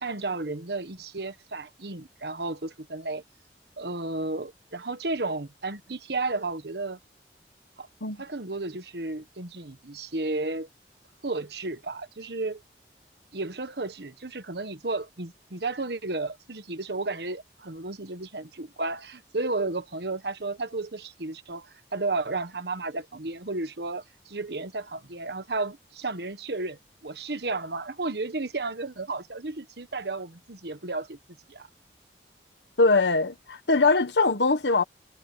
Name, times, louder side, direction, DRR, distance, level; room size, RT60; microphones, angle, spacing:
voice 1, 0.0-3.2 3.8-7.0 7.8-7.9 8.2-10.7 11.2-12.6 13.3-31.2 31.5-31.7, right 3 dB, 75° right, 1.3 m, -33 dB
voice 2, 32.8-34.8, left 3 dB, 90° left, 1.4 m, -22 dB
head